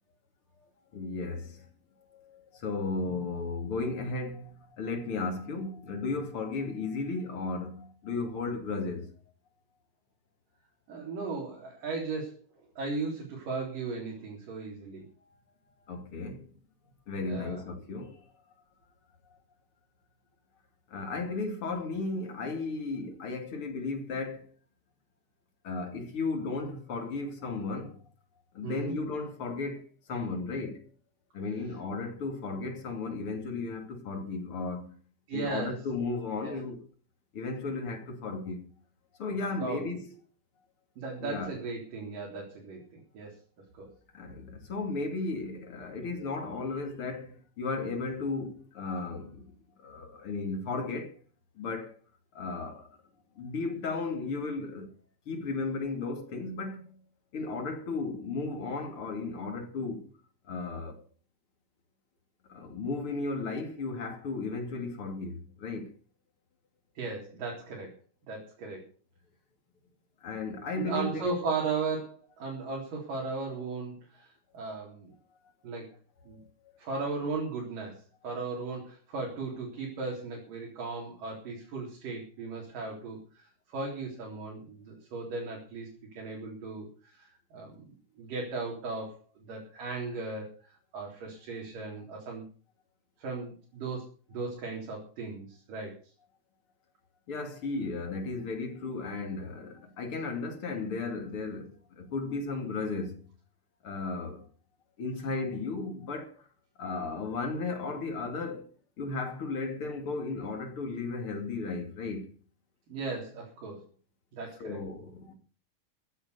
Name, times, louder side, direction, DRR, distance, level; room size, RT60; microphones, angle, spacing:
voice 1, 0.6-1.7 2.1-9.1 15.9-16.5 17.1-18.2 20.9-24.5 25.6-28.0 28.5-30.8 31.3-35.0 35.3-36.8 37.3-38.7 39.2-40.1 41.2-41.5 44.1-49.5 49.8-51.2 51.6-52.0 52.3-53.0 53.4-54.9 55.3-56.8 57.3-60.1 60.5-61.0 62.5-65.9 70.2-71.3 97.3-103.2 103.8-104.5 105.0-106.5 106.8-108.7 109.0-112.3 114.6-115.3, left 3 dB, 40° left, 3.3 m, -35 dB
voice 2, 10.9-12.5 12.8-15.1 17.2-17.6 28.6-29.0 35.3-35.8 36.4-36.6 39.5-39.9 41.0-43.4 43.7-43.9 67.0-68.0 68.3-68.9 70.8-75.1 75.6-75.9 76.3-76.4 76.8-85.9 86.2-87.8 88.2-90.5 90.9-92.5 93.2-96.0 112.9-113.9 114.3-114.8, right 4 dB, 75° right, 5.4 m, -36 dB
15.0 x 10.0 x 6.8 m
omnidirectional pair, 3.8 m